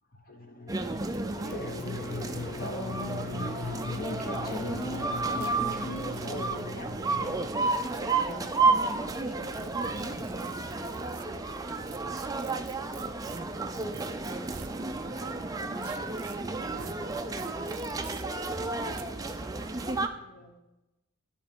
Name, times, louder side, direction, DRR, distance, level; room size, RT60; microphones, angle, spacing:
voice 1, 0.1-12.4 13.0-14.6 15.1-17.8 19.4-20.6, left 2 dB, 40° left, 1.0 m, -41 dB
sound 1, 0.7-20.1, right 3 dB, 15° right, 0.4 m, -32 dB
sound 2, 0.7-0.8 1.0-1.1 1.5-1.6 1.8-3.2 3.8-5.0 5.4-5.5 5.9-6.3 7.4-8.3 9.5-11.2 11.9-14.8 15.8-16.4 16.8-16.9 17.4-18.2 18.9-19.0, right 9 dB, 80° right, 0.5 m, -49 dB
12.5 x 4.3 x 3.6 m
head